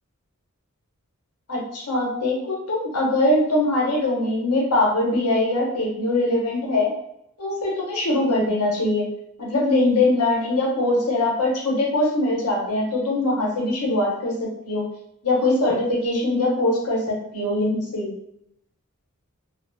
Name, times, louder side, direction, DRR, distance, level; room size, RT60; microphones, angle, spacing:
voice 1, 1.5-6.9 7.4-9.1 9.4-14.8 15.2-18.1, left 2 dB, 85° left, -2 dB, 0.8 m, -22 dB
2.6 x 2.4 x 2.2 m, 0.77 s
head